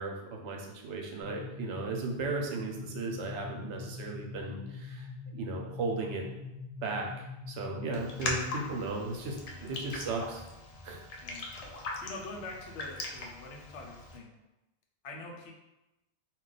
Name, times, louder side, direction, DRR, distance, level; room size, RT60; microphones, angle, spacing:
voice 1, 0.0-6.3 6.8-10.5 10.8-11.0, right 3 dB, 85° right, 1 dB, 0.9 m, -36 dB
sound 1, 1.2-8.8, left 4 dB, 15° left, 1.1 m, -44 dB
Raindrop, 7.9-14.2, left 2 dB, 65° left, 0.4 m, -40 dB
voice 2, 11.2-14.3 15.0-15.5, left 2 dB, 90° left, 0 dB, 0.9 m, -45 dB
2.3 x 2.3 x 3.8 m, 0.98 s
omnidirectional pair, 1.1 m